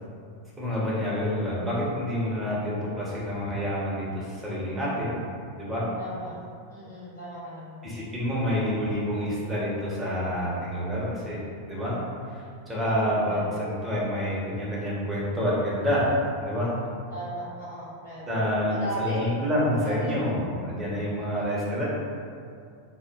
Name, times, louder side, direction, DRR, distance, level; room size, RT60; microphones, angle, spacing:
voice 1, 0.6-5.1 5.6-5.8 7.8-11.4 11.7-12.0 12.3-16.7 18.3-21.8, equal, 10° right, -8 dB, 1.0 m, -28 dB
voice 2, 6.0-6.4 6.7-7.9 12.8-13.6 17.1-19.3 19.8-20.4 21.2-21.5, right 1 dB, 85° left, -14 dB, 1.5 m, -37 dB
2.9 x 2.1 x 3.6 m, 2.4 s
figure-of-eight pair, 90°, 0 cm